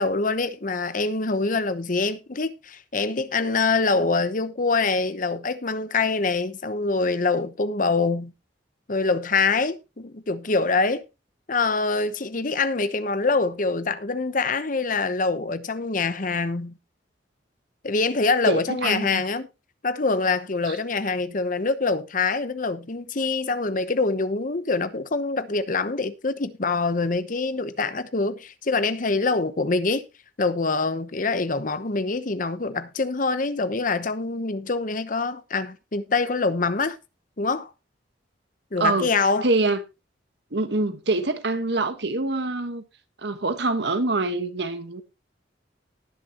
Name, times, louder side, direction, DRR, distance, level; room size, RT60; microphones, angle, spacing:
voice 1, 0.0-8.3 8.9-11.0 11.5-16.8 17.8-19.5 19.8-30.0 30.4-37.0 37.4-37.7 38.7-39.5, left 3 dB, 45° left, 0.9 m, -25 dB
voice 2, 18.5-19.2 20.7-20.8 38.8-39.1 39.4-39.8 40.5-42.8 43.2-45.0, right 2 dB, 65° right, 1.3 m, -25 dB
19.0 x 6.8 x 2.9 m
head